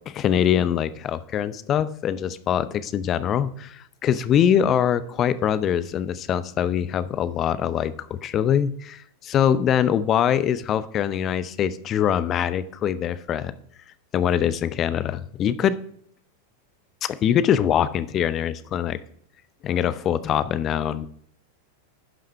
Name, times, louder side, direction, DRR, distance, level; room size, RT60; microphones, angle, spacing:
voice 1, 0.1-13.5 14.1-15.8 17.0-19.0 19.6-21.1, left 9 dB, 30° left, 15 dB, 0.6 m, -23 dB
11.5 x 5.8 x 4.6 m, 0.65 s
figure-of-eight pair, 90°, 0 cm